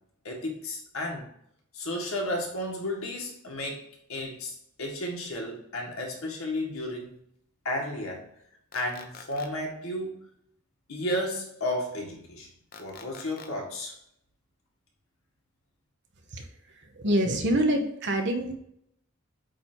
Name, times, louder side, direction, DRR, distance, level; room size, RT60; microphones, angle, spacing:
voice 1, 0.2-1.3 1.7-7.1 7.6-8.3 8.7-10.2 10.9-12.5 12.8-13.9, left 1 dB, 75° left, 0 dB, 1.7 m, -33 dB
sound 1, 8.7-9.5 12.7-13.5, left 5 dB, 45° left, 0.7 m, -46 dB
voice 2, 16.3-18.5, right 1 dB, 55° right, 5 dB, 1.0 m, -26 dB
8.4 x 2.8 x 4.4 m, 0.73 s
head